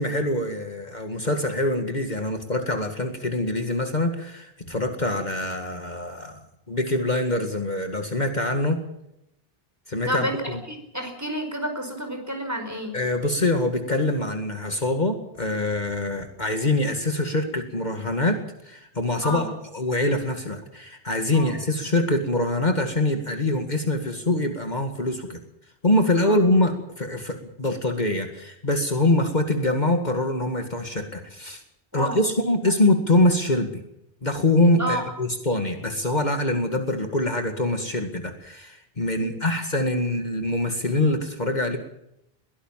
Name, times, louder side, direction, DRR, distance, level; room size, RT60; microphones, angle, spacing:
voice 1, 0.0-6.4 6.7-8.8 9.9-10.6 12.9-18.4 18.6-19.5 19.7-25.4 25.8-31.6 31.9-33.8 34.2-41.8, left 1 dB, 45° left, 5 dB, 2.2 m, -24 dB
voice 2, 10.1-13.0 19.2-19.5 21.3-21.6 26.2-26.4 31.9-32.2 34.8-35.0 39.2-39.4, equal, 15° right, 4 dB, 5.2 m, -30 dB
22.0 x 17.5 x 7.5 m, 0.80 s
omnidirectional pair, 1.0 m